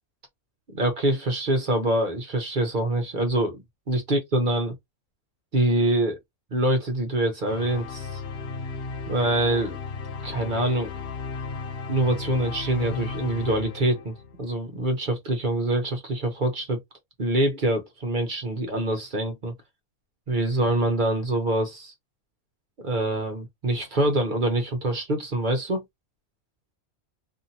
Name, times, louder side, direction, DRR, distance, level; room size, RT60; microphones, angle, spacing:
voice 1, 0.7-3.6 3.9-4.7 5.5-6.2 6.5-8.2 9.1-9.8 10.2-10.9 11.9-14.1 14.4-16.8 17.2-19.5 20.3-21.9 22.8-25.8, right 1 dB, 45° right, 0.8 m, -25 dB
sound 1, 7.4-14.5, left 4 dB, 65° left, 0.6 m, -35 dB
2.7 x 2.6 x 2.6 m
omnidirectional pair, 1.5 m